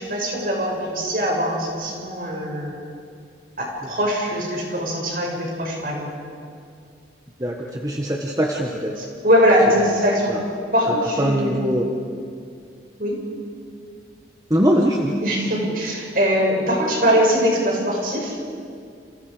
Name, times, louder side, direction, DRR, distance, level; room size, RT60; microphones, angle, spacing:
voice 1, 0.0-2.8 3.6-6.1 9.0-10.4 10.7-11.6 13.0-13.2 15.2-18.4, equal, 50° right, -1 dB, 6.8 m, -21 dB
voice 2, 7.4-9.0 10.3-10.4 11.2-11.8 14.5-15.2, equal, 20° right, 0 dB, 1.5 m, -22 dB
29.5 x 29.0 x 5.1 m, 2.3 s
head